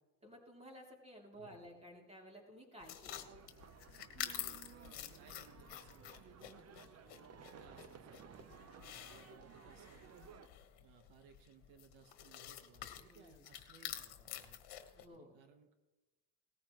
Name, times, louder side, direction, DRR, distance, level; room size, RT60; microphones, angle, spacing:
voice 1, 0.2-3.2 13.0-13.5 15.0-15.4, equal, 15° right, 0 dB, 3.0 m, -55 dB
voice 2, 1.4-1.7 4.7-6.5 6.8-14.6 15.0-15.7, right 6 dB, 90° right, 7 dB, 1.5 m, -64 dB
sound 1, 2.8-15.1, left 11 dB, 65° left, 1.5 m, -49 dB
sound 2, 3.1-10.5, right 7 dB, 35° right, 0.7 m, -57 dB
18.5 x 14.5 x 3.1 m, 1.1 s
cardioid pair, 130°, 43 cm